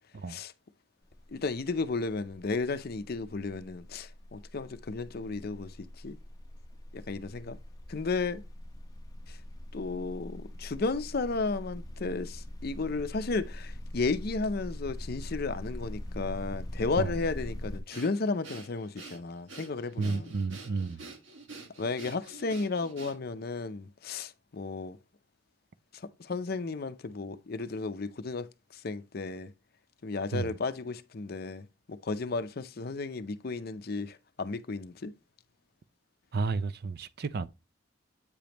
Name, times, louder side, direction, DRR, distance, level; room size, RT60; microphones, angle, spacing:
sound 1, 1.0-1.4 1.7-17.8, left 1 dB, 20° left, 0.7 m, -42 dB
voice 1, 1.3-5.7 6.0-6.2 6.9-7.6 7.9-8.4 9.3-9.4 9.7-20.3 21.8-25.0 26.2-28.5 28.7-29.5 30.0-35.1, left 3 dB, 55° left, 0.6 m, -33 dB
Breathing, 17.9-23.4, right 3 dB, 80° right, 1.6 m, -48 dB
voice 2, 20.0-21.1 30.3-30.5 36.3-37.5, right 4 dB, 55° right, 0.5 m, -32 dB
8.5 x 5.2 x 2.9 m
head